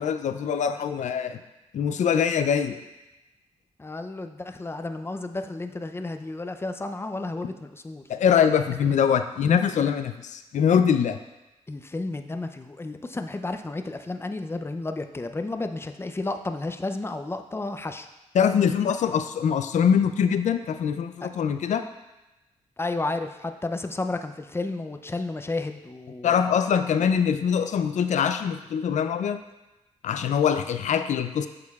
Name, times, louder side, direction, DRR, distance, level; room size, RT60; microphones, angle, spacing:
voice 1, 0.0-1.4 1.7-2.8 8.1-11.2 18.3-21.8 26.2-29.4 30.0-31.5, left 7 dB, 70° left, 9 dB, 0.4 m, -23 dB
voice 2, 3.8-8.1 11.7-18.1 21.2-21.3 22.8-26.4, left 2 dB, 20° left, 7 dB, 0.5 m, -32 dB
8.6 x 6.6 x 2.4 m, 1.0 s
cardioid pair, 70°, 13 cm